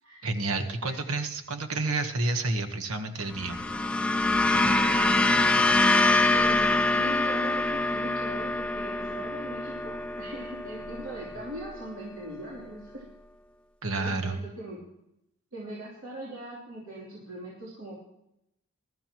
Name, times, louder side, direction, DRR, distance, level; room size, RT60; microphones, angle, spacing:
voice 1, 0.2-3.6 13.8-14.4, right 2 dB, 80° right, 7 dB, 1.3 m, -30 dB
sound 1, 3.3-11.8, left 2 dB, 5° left, 0.4 m, -25 dB
voice 2, 6.1-13.0 14.0-14.8 15.5-18.0, right 1 dB, 60° right, -6 dB, 3.4 m, -40 dB
22.0 x 13.0 x 3.1 m, 0.83 s
head